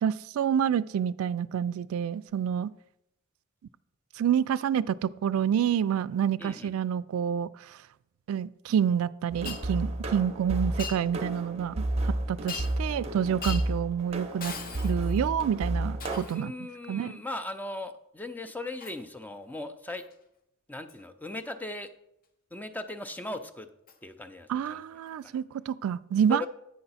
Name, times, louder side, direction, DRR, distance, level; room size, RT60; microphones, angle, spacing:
voice 1, 0.0-2.7 4.2-7.5 8.3-11.9 12.3-14.5 14.8-16.5 16.9-17.2 24.5-26.4, right 8 dB, 80° right, 0.3 m, -28 dB
voice 2, 6.4-6.8 12.9-13.1 16.3-20.0 20.7-21.9 22.5-23.7 24.0-24.8 25.2-25.4 26.3-26.5, left 2 dB, 10° left, 0.4 m, -38 dB
sound 1, 9.3-16.2, right 1 dB, 30° right, 0.7 m, -32 dB
Shatter, 9.5-9.6 10.8-11.0 12.5-12.9 13.4-13.7 14.4-15.3 16.0-16.5 18.8-19.0 20.0-20.1 20.9-21.0 23.9-24.0 25.1-25.2, left 6 dB, 45° left, 0.7 m, -39 dB
8.6 x 5.6 x 4.1 m
head